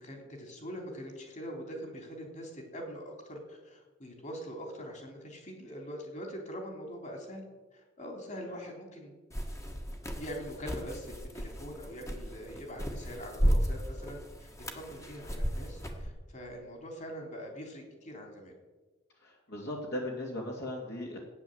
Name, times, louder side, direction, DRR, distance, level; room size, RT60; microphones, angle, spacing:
voice 1, 0.0-7.4 7.7-9.1 10.2-18.5, equal, 40° left, 2 dB, 3.3 m, -43 dB
sound 1, 9.3-16.1, equal, 15° left, 1.6 m, -34 dB
voice 2, 19.2-21.2, left 1 dB, 55° left, -2 dB, 2.6 m, -37 dB
15.5 x 9.7 x 7.9 m, 1.3 s
head